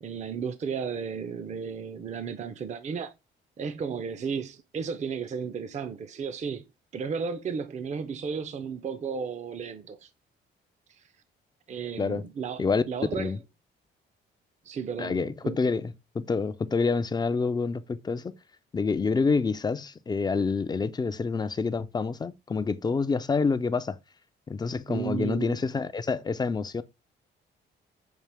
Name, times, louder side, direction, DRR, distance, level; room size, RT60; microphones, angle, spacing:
voice 1, 0.0-3.1 3.6-6.7 6.9-10.1 10.9-11.0 11.7-13.4 14.6-15.7 24.9-25.6, right 6 dB, 35° right, 0.5 m, -34 dB
voice 2, 15.0-18.3 18.7-24.0 24.5-26.8, left 4 dB, 20° left, 0.3 m, -27 dB
5.8 x 2.4 x 3.3 m
cardioid pair, 90°, 20 cm